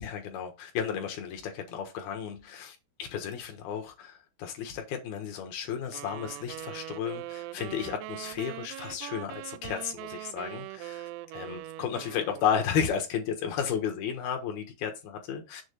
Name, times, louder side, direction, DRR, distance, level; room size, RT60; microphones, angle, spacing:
voice 1, 0.0-2.7 3.1-15.6, left 8 dB, 65° left, 2.7 m, -33 dB
sound 1, 5.9-12.9, right 17 dB, 85° right, 3.1 m, -42 dB
7.6 x 3.8 x 6.6 m
omnidirectional pair, 5.9 m